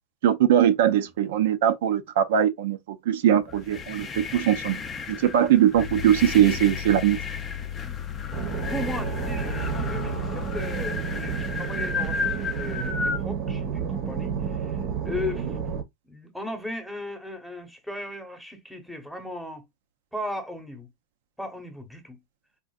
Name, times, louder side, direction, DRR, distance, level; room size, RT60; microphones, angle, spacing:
voice 1, 0.2-4.1 4.3-4.8 5.2-7.2, right 10 dB, 80° right, 0.5 m, -21 dB
sound 1, 3.4-13.2, left 5 dB, 25° left, 0.4 m, -34 dB
sound 2, 5.7-12.3, left 10 dB, 75° left, 0.7 m, -37 dB
sound 3, 8.3-15.8, right 7 dB, 50° right, 0.7 m, -30 dB
voice 2, 8.7-14.8 15.0-15.6 16.0-19.6 20.1-20.9 21.4-22.2, left 2 dB, ahead, 0.9 m, -36 dB
3.7 x 2.5 x 2.3 m
supercardioid pair, 135°, 0 cm